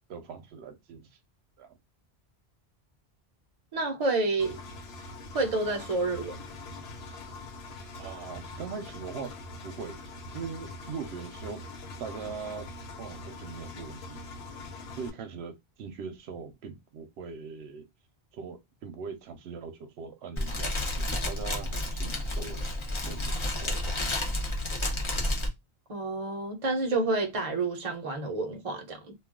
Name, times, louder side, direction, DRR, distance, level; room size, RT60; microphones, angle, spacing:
voice 1, 0.1-1.1 1.6-1.8 8.0-9.4 9.6-10.0 10.3-11.6 12.0-12.7 13.0-14.6 15.0-17.9 18.3-22.7 23.0-23.9, right 5 dB, 85° right, 0.9 m, -41 dB
voice 2, 3.7-4.6 5.3-6.4 25.9-29.1, right 3 dB, 40° right, 0.7 m, -29 dB
Engine, 4.4-15.1, left 2 dB, 80° left, 0.9 m, -43 dB
Fire, 20.4-25.5, left 1 dB, 35° left, 0.7 m, -31 dB
2.3 x 2.3 x 3.5 m
omnidirectional pair, 1.1 m